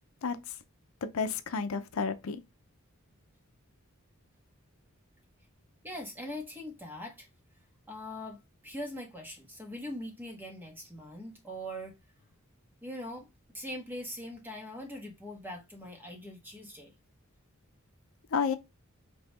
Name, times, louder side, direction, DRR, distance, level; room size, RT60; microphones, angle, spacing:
voice 1, 1.1-2.4 18.3-18.6, left 5 dB, 75° left, 0.6 m, -30 dB
voice 2, 5.8-7.3 7.9-12.0 12.8-13.3 13.5-16.9, left 1 dB, 10° right, 1.4 m, -42 dB
5.4 x 2.9 x 3.0 m
head